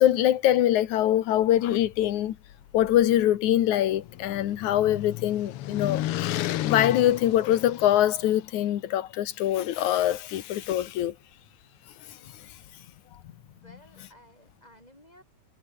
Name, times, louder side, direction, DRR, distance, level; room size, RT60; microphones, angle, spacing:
voice 1, 0.0-2.4 2.7-6.0 6.6-11.1, left 12 dB, 70° left, 2.6 m, -23 dB
sound 1, 3.5-8.3, left 14 dB, 90° left, 1.2 m, -33 dB
voice 2, 13.6-15.2, equal, 10° left, 8.0 m, -54 dB
omnidirectional pair, 3.7 m